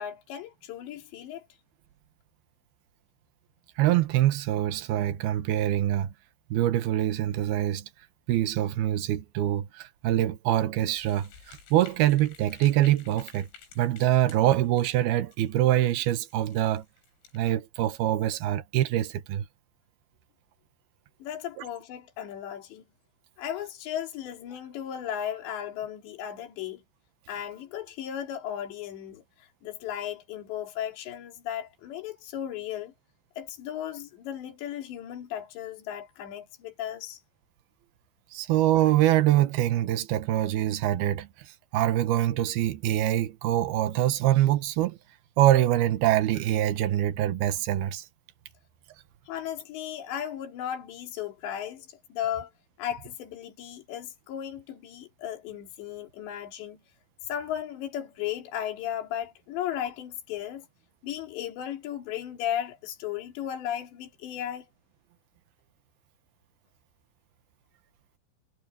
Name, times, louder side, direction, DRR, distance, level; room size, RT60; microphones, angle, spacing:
voice 1, 0.0-1.4 21.2-22.8 23.4-26.8 27.3-29.2 29.6-32.9 33.4-37.2 49.3-52.5 52.8-56.8 57.3-60.7 61.0-64.7, left 10 dB, 60° left, 5.4 m, -35 dB
voice 2, 3.8-6.1 6.5-7.8 8.3-13.5 13.8-16.8 17.3-19.4 38.3-41.3 41.7-45.0 45.4-48.0, right 13 dB, 75° right, 2.4 m, -24 dB
sound 1, 11.0-17.4, left 7 dB, 75° left, 8.3 m, -53 dB
omnidirectional pair, 6.0 m